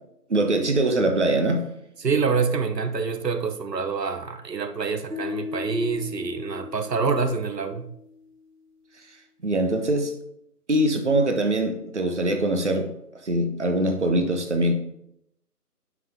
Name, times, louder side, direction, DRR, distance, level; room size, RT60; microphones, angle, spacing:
voice 1, 0.3-1.6 9.4-10.1 10.7-12.9 13.2-14.7, right 1 dB, 45° right, 1.2 m, -22 dB
voice 2, 2.0-7.9, right 5 dB, 85° right, 1.0 m, -26 dB
sound 1, 5.1-8.3, left 5 dB, 65° right, 2.0 m, -36 dB
11.0 x 6.1 x 3.7 m
figure-of-eight pair, 175°, 48 cm